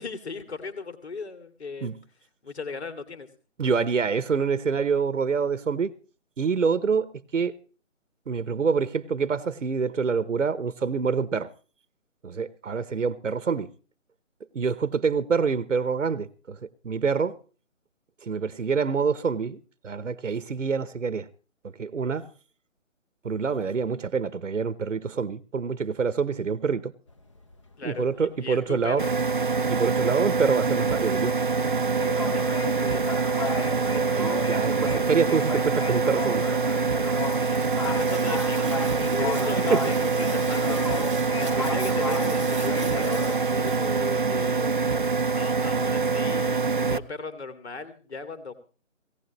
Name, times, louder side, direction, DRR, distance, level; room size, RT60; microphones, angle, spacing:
voice 1, 0.0-1.9 2.4-3.3 27.8-29.1 32.2-32.5 37.8-38.7 39.0-44.7 45.3-48.5, left 4 dB, 55° left, 2.6 m, -37 dB
voice 2, 3.6-5.9 6.4-7.6 8.3-11.5 12.2-13.7 14.5-17.4 18.2-21.3 21.8-22.3 23.2-26.9 27.8-29.0 29.7-31.3 33.7-36.5 39.7-39.9, right 5 dB, 65° right, 1.0 m, -26 dB
sound 1, 27.1-28.3 28.7-28.9 29.1-43.4, left 4 dB, 25° left, 1.0 m, -35 dB
sound 2, 29.0-47.0, right 4 dB, 40° right, 0.6 m, -25 dB
sound 3, 37.1-44.2, right 4 dB, 25° right, 1.0 m, -39 dB
18.0 x 17.5 x 3.1 m
figure-of-eight pair, 165°, 40 cm